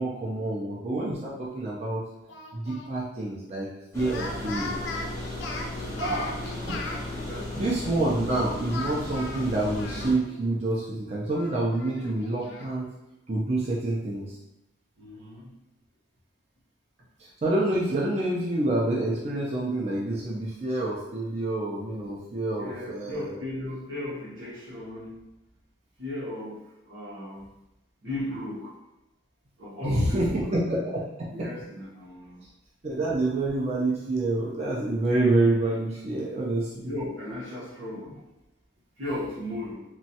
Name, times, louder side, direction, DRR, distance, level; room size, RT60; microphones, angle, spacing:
voice 1, 0.0-2.0 2.5-3.7 3.9-4.7 6.7-6.8 7.6-12.8 13.3-14.3 17.4-23.4 29.8-31.0 31.4-31.5 32.8-36.9, right 2 dB, 35° right, -5 dB, 0.4 m, -27 dB
Speech, 2.3-2.9 4.0-7.0 8.7-10.4 10.8-10.9 11.3-12.7, left 3 dB, 65° left, 0.4 m, -38 dB
sound 1, 3.9-10.1, left 1 dB, 15° left, 0.7 m, -36 dB
voice 2, 5.8-6.4 7.1-7.7 15.0-15.5 22.6-25.2 26.0-26.6 26.9-27.5 28.0-28.7 29.6-30.5 31.3-32.4 36.9-38.2 39.0-39.8, left 1 dB, 80° right, -6 dB, 1.0 m, -36 dB
3.0 x 2.2 x 2.8 m, 0.93 s
head